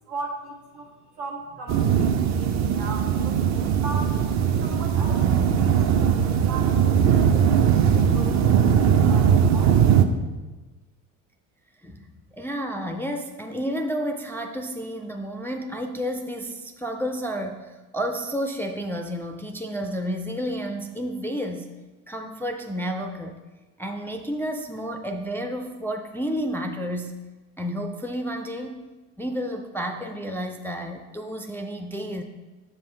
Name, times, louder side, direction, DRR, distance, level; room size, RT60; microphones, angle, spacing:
voice 1, 0.1-0.9 1.2-4.2 4.6-5.3 5.6-8.4 8.7-9.8, right 3 dB, 85° right, -2 dB, 1.5 m, -38 dB
sound 1, 1.7-10.0, right 8 dB, 40° right, 0.6 m, -20 dB
voice 2, 12.3-21.7 22.1-23.4 23.8-27.2 27.6-28.9 29.2-32.2, equal, 5° left, 3 dB, 0.3 m, -31 dB
6.8 x 5.5 x 3.2 m, 1.2 s
hypercardioid pair, 80°, 43 cm